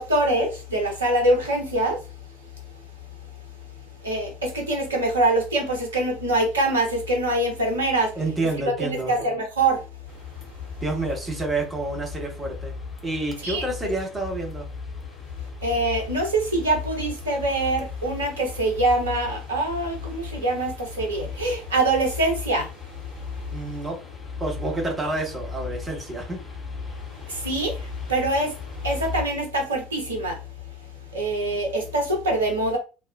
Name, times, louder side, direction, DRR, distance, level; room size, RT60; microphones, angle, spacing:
voice 1, 0.0-2.0 4.0-8.1 8.6-9.8 13.4-13.6 15.6-22.7 27.3-28.5 28.8-30.4 31.1-32.8, right 2 dB, 80° right, 0.8 m, -24 dB
voice 2, 8.2-9.1 10.8-12.7 13.0-14.7 23.5-24.0 24.4-26.4, right 2 dB, 25° right, 1.2 m, -28 dB
sound 1, 10.1-29.2, left 4 dB, 25° left, 1.0 m, -37 dB
2.4 x 2.3 x 2.3 m
figure-of-eight pair, 60°, 0 cm